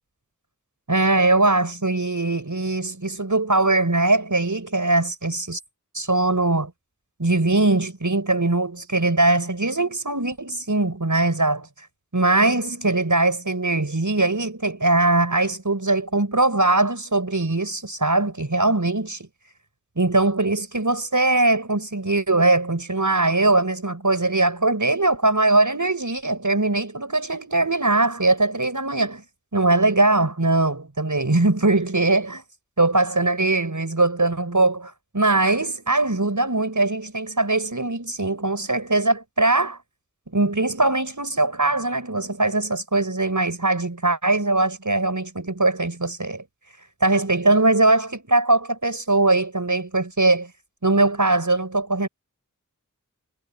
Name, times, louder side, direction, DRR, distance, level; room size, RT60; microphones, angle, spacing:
voice 1, 0.9-5.6 5.9-6.7 7.2-11.7 12.1-19.3 20.0-29.2 29.5-32.4 32.8-39.8 40.3-46.4 47.0-50.5 50.8-52.1, right 2 dB, 65° right, 6.0 m, -21 dB
wide cardioid pair, 45°, 33 cm